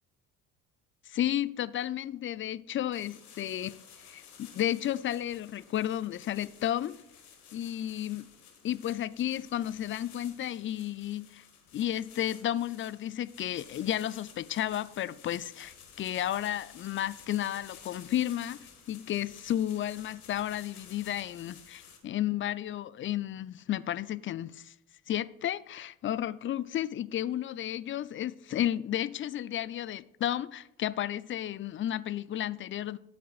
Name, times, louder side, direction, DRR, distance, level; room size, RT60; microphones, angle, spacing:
voice 1, 1.1-3.8 4.0-7.0 7.5-8.3 8.6-11.4 11.7-24.7 25.1-33.0, left 12 dB, 30° left, 0.4 m, -32 dB
sound 1, 2.9-22.0, left 7 dB, 85° left, 1.5 m, -53 dB
13.0 x 8.2 x 2.4 m
hypercardioid pair, 55°, 43 cm